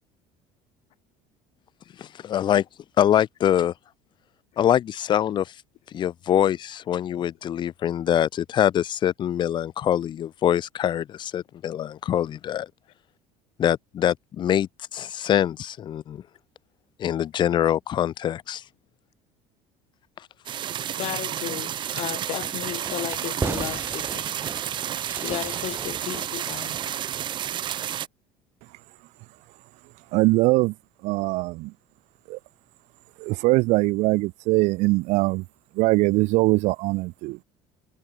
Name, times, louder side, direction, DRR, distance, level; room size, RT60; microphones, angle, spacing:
voice 1, 2.0-2.6 3.0-3.7 4.6-5.5 5.9-12.7 13.6-16.2 17.0-18.6, left 10 dB, 35° left, 1.7 m, -24 dB
sound 1, 20.5-28.1, right 10 dB, 35° right, 1.5 m, -31 dB
voice 2, 20.9-24.9 25.2-26.9, left 16 dB, 55° left, 4.0 m, -34 dB
Fireworks, 22.4-27.6, right 4 dB, 15° right, 2.3 m, -37 dB
voice 3, 30.1-30.7 31.0-31.7 32.3-32.4 33.2-35.4 35.8-37.4, right 22 dB, 60° right, 0.4 m, -22 dB
cardioid pair, 155°, 13 cm